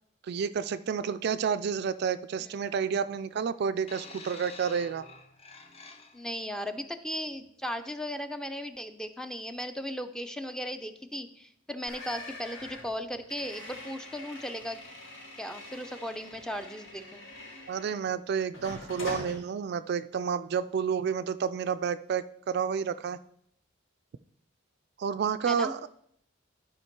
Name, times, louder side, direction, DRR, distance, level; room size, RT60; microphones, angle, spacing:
voice 1, 0.2-5.1 17.7-23.2 25.0-25.9, right 6 dB, 55° right, 13 dB, 0.3 m, -30 dB
sound 1, 3.9-6.4 7.3-7.5, left 4 dB, 30° left, 0.8 m, -48 dB
voice 2, 6.1-14.8 15.4-17.3 25.5-25.7, equal, 5° left, 9 dB, 0.5 m, -37 dB
sound 2, 11.9-18.1 18.5-19.4, left 2 dB, 85° left, 3.9 m, -44 dB
12.0 x 5.0 x 4.6 m, 0.70 s
head